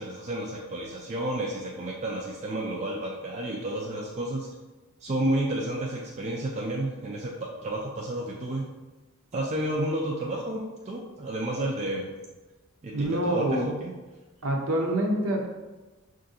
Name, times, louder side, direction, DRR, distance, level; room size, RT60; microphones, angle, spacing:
voice 1, 0.0-4.5 5.0-8.6 9.3-12.1 12.8-13.9, right 1 dB, 30° right, -2 dB, 0.3 m, -31 dB
voice 2, 12.9-13.6 14.4-15.5, right 1 dB, 65° right, 0 dB, 0.7 m, -26 dB
5.5 x 2.5 x 2.6 m, 1.2 s
head